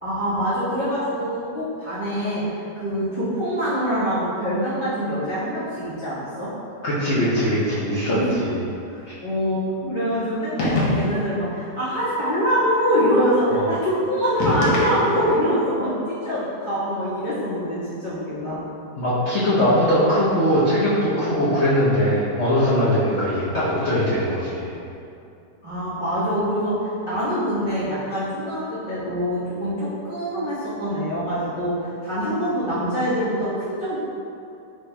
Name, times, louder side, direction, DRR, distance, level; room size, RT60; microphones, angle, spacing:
voice 1, 0.0-6.5 8.1-8.3 8.9-18.6 25.6-34.0, equal, 20° right, -14 dB, 1.0 m, -24 dB
voice 2, 6.8-8.6 9.1-9.2 13.5-13.7 19.0-24.8, equal, 55° left, -10 dB, 0.8 m, -21 dB
sound 1, 10.6-11.3 14.4-15.4, left 1 dB, 75° left, 1.4 m, -24 dB
4.7 x 4.2 x 2.2 m, 2.6 s
omnidirectional pair, 1.9 m